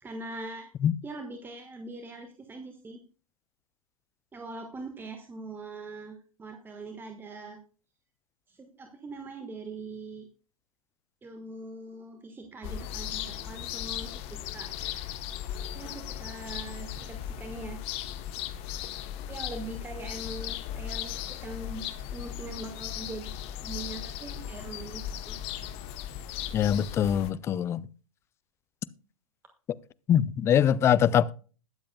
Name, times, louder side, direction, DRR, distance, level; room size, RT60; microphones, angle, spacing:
voice 1, 0.0-0.7 1.0-3.0 4.3-7.6 8.5-10.3 11.2-14.7 15.7-17.8 19.3-21.9 22.1-25.4, right 2 dB, 10° right, 1.4 m, -42 dB
sound 1, 12.6-27.3, left 10 dB, 35° left, 1.0 m, -37 dB
voice 2, 26.5-27.9 30.1-31.3, left 9 dB, 15° left, 0.4 m, -23 dB
21.0 x 7.6 x 2.2 m
figure-of-eight pair, 105°, 18 cm